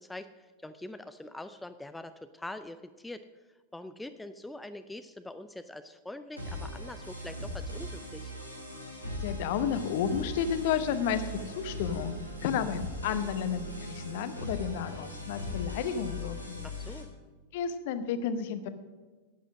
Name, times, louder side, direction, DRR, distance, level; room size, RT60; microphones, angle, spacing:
voice 1, 0.0-3.2 3.7-8.3 16.6-17.1, left 1 dB, 5° left, 10 dB, 0.5 m, -44 dB
sound 1, 6.4-17.0, left 1 dB, 90° right, 2.4 m, -39 dB
voice 2, 9.2-16.6 17.5-18.7, left 8 dB, 50° left, 11 dB, 0.9 m, -32 dB
11.5 x 8.5 x 6.2 m, 1.3 s
figure-of-eight pair, 90°, 0 cm